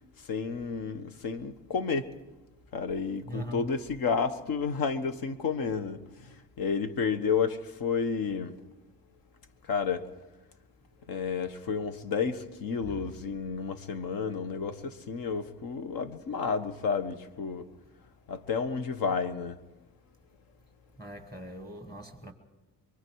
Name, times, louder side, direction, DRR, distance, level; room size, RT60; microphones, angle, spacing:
voice 1, 0.2-2.1 2.7-8.5 9.7-10.1 11.1-17.7 18.3-19.6, left 5 dB, 60° left, 1.4 m, -31 dB
voice 2, 3.3-3.7 12.9-13.0 21.0-22.3, right 1 dB, 10° left, 1.6 m, -41 dB
25.0 x 23.5 x 4.7 m
cardioid pair, 130°, 40 cm